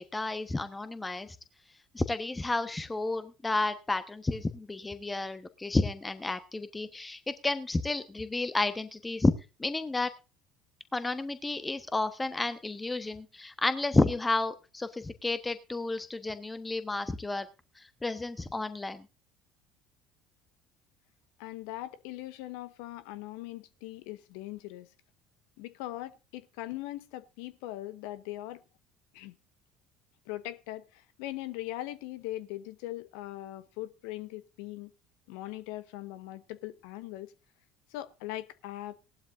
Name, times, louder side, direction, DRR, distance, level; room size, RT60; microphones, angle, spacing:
voice 1, 0.0-1.4 1.9-9.3 9.6-10.1 10.9-17.5 17.8-19.1, left 2 dB, 15° left, 1.1 m, -31 dB
voice 2, 21.4-24.9 25.6-28.6 29.1-29.4 30.3-34.9 35.3-37.3 37.9-39.0, left 16 dB, 70° left, 1.0 m, -40 dB
18.5 x 12.0 x 2.6 m
hypercardioid pair, 60°, 0 cm